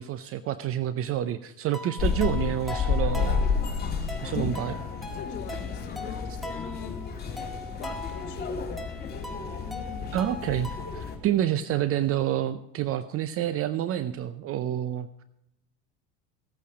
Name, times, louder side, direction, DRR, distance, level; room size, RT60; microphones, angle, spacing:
voice 1, 0.0-3.8 4.2-4.8 10.1-15.2, right 11 dB, 40° right, 13 dB, 0.6 m, -28 dB
sound 1, 1.7-11.1, left 1 dB, ahead, 1.8 m, -41 dB
sound 2, 2.0-11.2, left 6 dB, 25° left, 2.8 m, -31 dB
voice 2, 5.1-7.0 7.8-8.9, left 8 dB, 55° left, 6 dB, 2.1 m, -42 dB
15.5 x 8.3 x 5.0 m, 0.84 s
hypercardioid pair, 90°, 36 cm